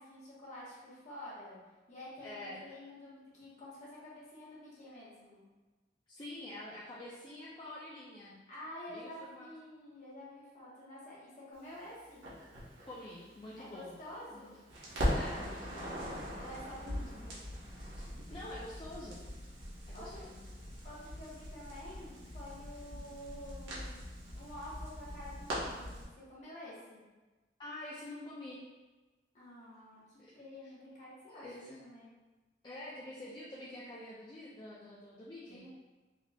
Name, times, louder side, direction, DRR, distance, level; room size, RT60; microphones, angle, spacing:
voice 1, 0.0-1.6 1.9-5.4 8.5-12.2 13.6-14.6 16.4-17.4 19.9-20.3 20.8-24.1 24.3-26.0 26.3-27.0 29.3-30.0 30.3-32.1 35.5-35.7, left 1 dB, 40° left, -8 dB, 1.2 m, -49 dB
voice 2, 2.2-2.6 6.1-8.4 8.9-9.5 12.9-14.0 14.3-14.5 15.1-16.0 16.8-17.3 17.9-18.0 18.3-19.2 19.9-20.5 27.6-28.6 30.2-30.3 30.6-30.7 31.3-31.9 32.6-35.6, left 1 dB, 25° left, -7 dB, 0.4 m, -47 dB
Crackle, 12.2-14.4 14.7-26.0, equal, 85° right, 1.1 m, -40 dB
4.0 x 2.8 x 2.3 m, 1.2 s
head